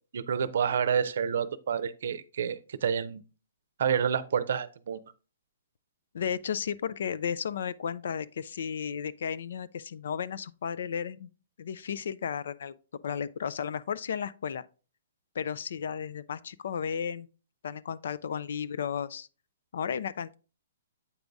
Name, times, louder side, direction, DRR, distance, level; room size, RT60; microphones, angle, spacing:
voice 1, 0.1-3.2 3.8-5.0, right 7 dB, 65° right, 0.6 m, -29 dB
voice 2, 6.1-11.3 11.6-12.7 13.0-14.6 15.3-17.3 17.6-19.3 19.7-20.4, left 7 dB, 70° left, 0.4 m, -34 dB
8.2 x 3.9 x 3.5 m
hypercardioid pair, 150°, 0 cm